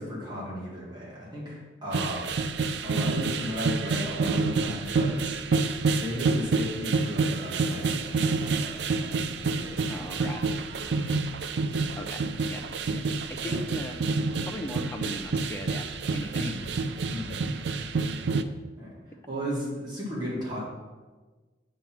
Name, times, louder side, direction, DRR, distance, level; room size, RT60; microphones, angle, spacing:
voice 1, 0.0-10.1 10.7-10.9 13.4-13.6 16.3-16.6 17.1-17.4 18.8-18.9 19.3-20.6, equal, 25° right, -7 dB, 2.0 m, -36 dB
sound 1, 1.9-18.4, right 4 dB, 70° right, 0.4 m, -28 dB
voice 2, 9.9-10.4 12.0-12.2 12.5-12.7 13.3-14.0 14.5-16.5, left 1 dB, 15° left, 3 dB, 0.6 m, -38 dB
8.1 x 3.2 x 5.9 m, 1.3 s
head